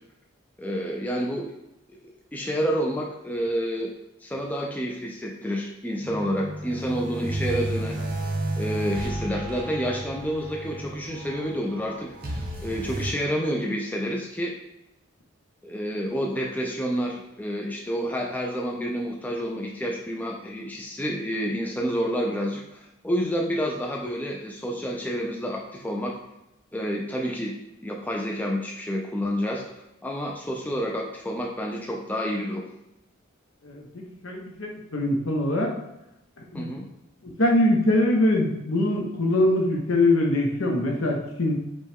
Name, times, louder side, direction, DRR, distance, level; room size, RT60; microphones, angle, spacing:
voice 1, 0.6-1.5 1.9-2.0 2.3-3.9 4.2-8.0 8.6-14.6 15.6-26.2 26.7-27.5 27.8-29.6 30.0-32.6 36.5-36.9, equal, 10° left, -1 dB, 0.3 m, -29 dB
sound 1, 6.0-13.1, right 1 dB, 45° right, 0.7 m, -32 dB
voice 2, 33.6-35.7 36.4-36.7 37.4-41.6, left 1 dB, 75° left, 0 dB, 0.9 m, -23 dB
5.2 x 2.3 x 3.4 m, 0.91 s
head